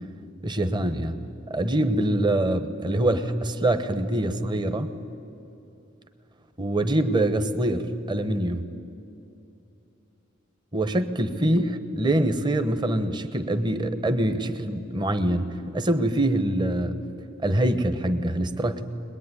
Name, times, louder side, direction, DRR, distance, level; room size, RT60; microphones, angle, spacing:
voice 1, 0.4-1.2 1.5-4.9 6.6-8.7 10.7-16.9 17.4-18.8, right 1 dB, 20° right, 9 dB, 1.0 m, -24 dB
22.0 x 21.0 x 9.8 m, 2.8 s
head